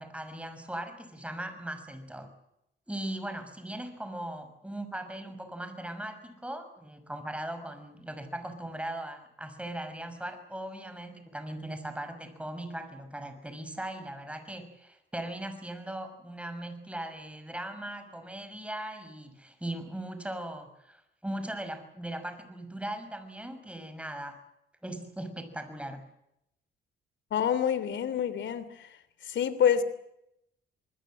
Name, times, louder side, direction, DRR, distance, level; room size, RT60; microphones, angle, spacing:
voice 1, 0.0-2.3 2.9-24.4 24.8-26.0, right 1 dB, 5° right, 6.2 m, -39 dB
voice 2, 27.3-28.6 29.2-29.8, left 8 dB, 70° left, 3.2 m, -26 dB
26.5 x 21.0 x 7.8 m
cardioid pair, 90°, 20 cm